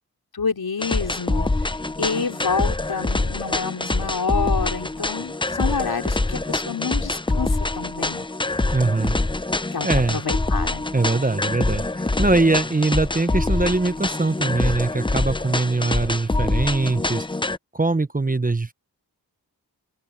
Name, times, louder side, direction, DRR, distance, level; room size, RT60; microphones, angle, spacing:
voice 1, 0.3-1.5 2.0-8.2 9.7-10.9, left 5 dB, 70° left, 5.1 m, -28 dB
sound 1, 0.8-17.6, left 2 dB, 15° left, 0.6 m, -25 dB
voice 2, 8.7-9.2 9.8-10.2 10.9-17.3 17.7-18.7, right 3 dB, 20° right, 1.0 m, -22 dB
open air
cardioid pair, 60°, 38 cm